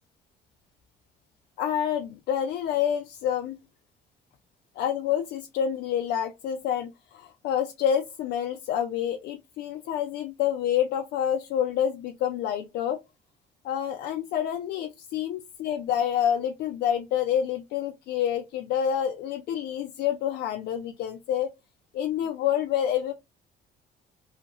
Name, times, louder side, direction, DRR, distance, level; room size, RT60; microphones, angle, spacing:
voice 1, 1.6-3.6 4.8-13.0 13.6-21.5 21.9-23.1, left 9 dB, 75° left, 0.4 m, -28 dB
2.8 x 2.4 x 2.8 m
cardioid pair, 110°, 17 cm